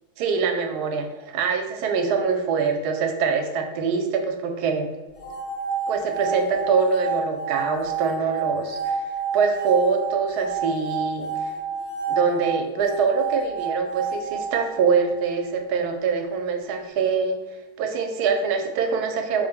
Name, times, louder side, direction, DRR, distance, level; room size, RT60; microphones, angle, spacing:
voice 1, 0.2-4.9 5.9-9.0 9.3-11.5 12.1-17.4 17.8-19.5, right 5 dB, 80° right, 5 dB, 1.1 m, -24 dB
sound 1, 5.2-15.3, right 5 dB, 75° left, 1.5 m, -29 dB
4.3 x 2.0 x 3.4 m, 1.1 s
omnidirectional pair, 1.6 m